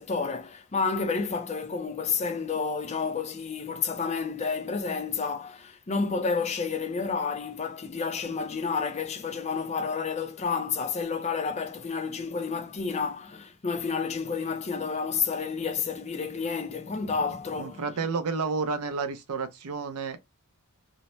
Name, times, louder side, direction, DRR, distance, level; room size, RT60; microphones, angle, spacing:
voice 1, 0.0-17.9, left 5 dB, 30° left, 0.4 m, -30 dB
voice 2, 17.6-20.2, right 4 dB, 85° right, 0.5 m, -30 dB
2.7 x 2.1 x 3.0 m
head